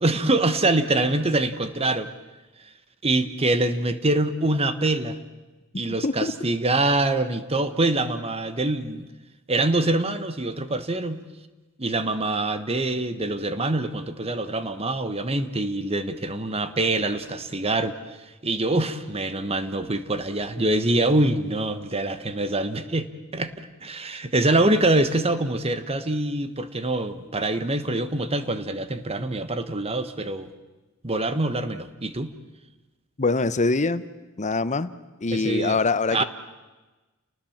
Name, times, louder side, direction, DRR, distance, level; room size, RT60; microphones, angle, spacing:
voice 1, 0.0-2.1 3.0-5.2 5.8-9.1 9.5-11.2 11.8-18.0 18.4-30.5 31.0-32.3 35.3-35.8 36.1-36.2, right 2 dB, 25° right, 11 dB, 1.2 m, -24 dB
voice 2, 33.2-34.1 34.4-34.9 35.2-36.2, left 3 dB, 35° left, 14 dB, 0.8 m, -23 dB
30.0 x 19.5 x 7.2 m, 1.2 s
head